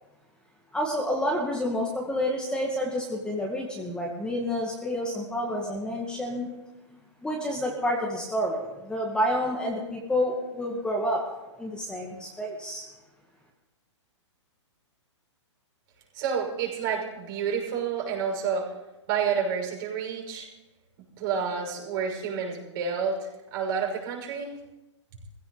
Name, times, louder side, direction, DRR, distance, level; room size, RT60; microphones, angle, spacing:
voice 1, 0.7-6.5 7.2-11.2 11.6-12.8, equal, 5° left, -1 dB, 2.1 m, -29 dB
voice 2, 16.1-18.7 19.1-20.5 21.2-24.5, right 6 dB, 45° right, 0 dB, 6.3 m, -29 dB
19.5 x 16.0 x 4.1 m, 1.0 s
hypercardioid pair, 130°, 16 cm